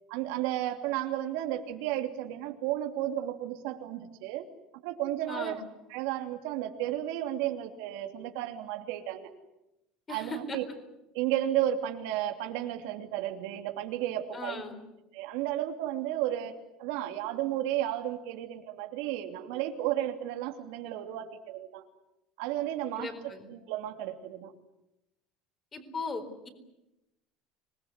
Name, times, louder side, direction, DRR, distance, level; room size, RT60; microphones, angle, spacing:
voice 1, 0.1-4.5 4.8-5.6 5.9-9.3 10.1-10.6 11.1-14.6 15.1-16.5 16.8-21.8 22.4-24.5, right 12 dB, 80° right, 5 dB, 2.9 m, -33 dB
voice 2, 5.3-5.6 10.1-10.6 14.3-14.7 23.0-23.5 25.7-26.5, left 3 dB, 20° left, 6 dB, 4.2 m, -38 dB
26.0 x 20.0 x 9.6 m, 0.92 s
cardioid pair, 160°, 0 cm